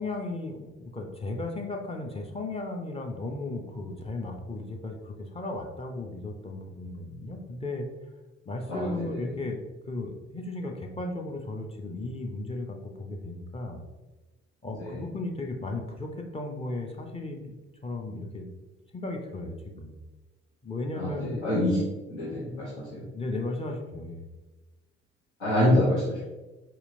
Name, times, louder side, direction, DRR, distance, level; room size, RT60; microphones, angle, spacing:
voice 1, 0.0-7.9 8.5-9.6 9.9-13.8 14.6-17.6 17.8-18.5 18.9-19.9 20.6-21.4 23.1-24.2, left 2 dB, 15° left, 2 dB, 0.5 m, -35 dB
voice 2, 8.7-9.2 14.8-15.0 20.9-21.8 22.1-23.0 25.4-26.2, left 1 dB, 85° left, -11 dB, 1.1 m, -26 dB
4.3 x 2.8 x 2.6 m, 1.1 s
figure-of-eight pair, 45°, 34 cm